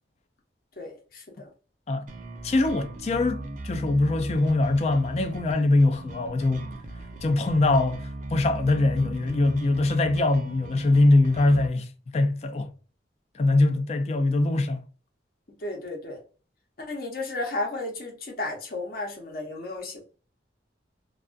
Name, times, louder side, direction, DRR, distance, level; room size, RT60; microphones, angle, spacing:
voice 1, 0.8-1.5 15.6-16.2 16.8-20.0, left 2 dB, 50° left, 0.7 m, -33 dB
sound 1, 2.1-11.7, right 2 dB, 45° right, 0.4 m, -38 dB
voice 2, 2.4-6.7 7.2-11.9 12.1-12.7 13.3-14.8, left 2 dB, 35° left, 0.3 m, -22 dB
2.3 x 2.3 x 2.4 m
head